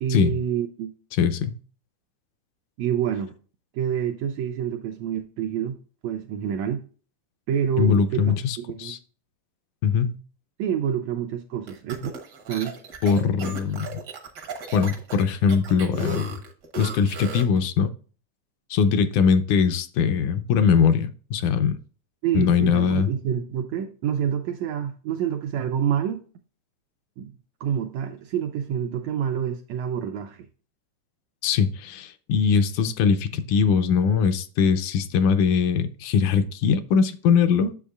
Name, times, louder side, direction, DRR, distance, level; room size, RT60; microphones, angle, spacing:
voice 1, 0.0-0.9 2.8-3.3 3.7-5.8 6.0-6.8 7.5-8.9 10.6-12.2 12.5-12.8 22.2-26.2 27.2-27.3 27.6-30.5, right 9 dB, 80° right, 1.6 m, -27 dB
voice 2, 1.1-1.6 7.8-9.0 9.8-10.2 13.0-14.0 14.7-16.3 16.8-17.9 18.7-21.8 22.3-23.1 31.4-37.7, left 6 dB, 80° left, 2.1 m, -21 dB
sound 1, 11.7-17.6, right 3 dB, 65° right, 1.0 m, -36 dB
8.4 x 7.1 x 2.3 m
omnidirectional pair, 3.6 m